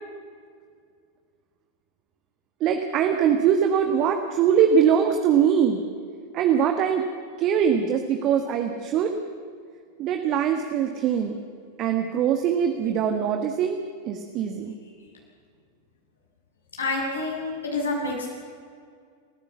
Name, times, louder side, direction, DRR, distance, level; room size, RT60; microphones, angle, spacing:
voice 1, 2.6-5.8 6.3-7.0 7.4-9.1 10.0-11.4 11.8-14.7, right 8 dB, 35° right, 5 dB, 1.7 m, -22 dB
voice 2, 16.8-18.3, left 3 dB, 70° left, -2 dB, 7.6 m, -28 dB
29.0 x 15.5 x 7.1 m, 2.2 s
figure-of-eight pair, 90°, 0 cm